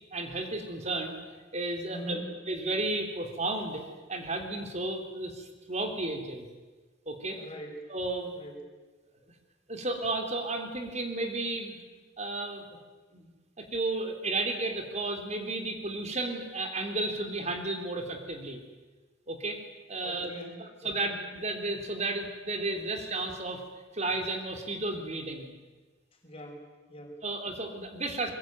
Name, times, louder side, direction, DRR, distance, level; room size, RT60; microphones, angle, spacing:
voice 1, 0.1-1.2 1.5-6.5 7.1-7.4 7.9-8.4 9.7-11.8 12.2-12.6 13.1-13.3 13.6-18.6 19.3-19.6 19.9-20.3 20.6-23.6 23.9-25.5 27.2-28.3, right 2 dB, 35° right, 5 dB, 3.7 m, -33 dB
voice 2, 1.9-2.2 7.3-7.9 8.3-8.7 20.0-21.1 26.2-27.2, right 1 dB, 30° left, 1 dB, 6.2 m, -43 dB
24.0 x 22.5 x 9.4 m, 1.3 s
head